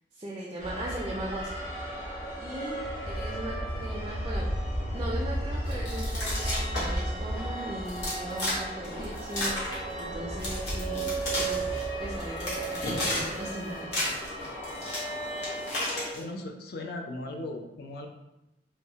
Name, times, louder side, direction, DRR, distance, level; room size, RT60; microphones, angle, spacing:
voice 1, 0.1-2.1 2.4-4.5 4.9-11.7 12.0-14.0, right 1 dB, 25° right, -3 dB, 0.3 m, -38 dB
sound 1, 0.6-16.1, right 1 dB, 35° left, 0.8 m, -34 dB
sound 2, 5.7-7.1 7.3-7.4 7.8-8.6 8.8-10.1 10.4-11.8 12.2-13.5 13.8-16.2, left 1 dB, 75° left, 1.0 m, -33 dB
voice 2, 16.1-18.1, left 2 dB, 60° left, 3 dB, 0.4 m, -37 dB
3.1 x 2.1 x 2.7 m, 0.93 s
head